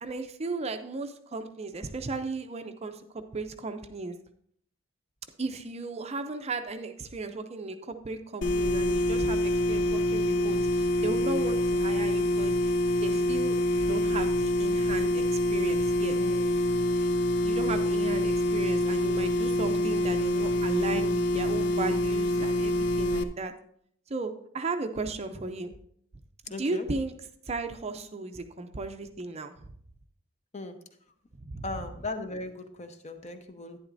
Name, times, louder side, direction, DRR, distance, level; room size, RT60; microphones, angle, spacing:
voice 1, 0.0-3.0 3.3-4.1 5.4-12.7 13.0-16.2 17.4-23.5 24.1-25.7 26.6-27.1 27.5-29.5 31.4-31.6, right 3 dB, 30° right, 7 dB, 0.5 m, -35 dB
sound 1, 8.4-23.2, left 1 dB, 55° left, 0.6 m, -26 dB
voice 2, 16.2-16.5 17.6-18.0 26.5-26.9 30.5-30.7 31.6-33.8, left 2 dB, 30° left, 7 dB, 0.9 m, -38 dB
11.0 x 9.8 x 2.6 m, 0.64 s
head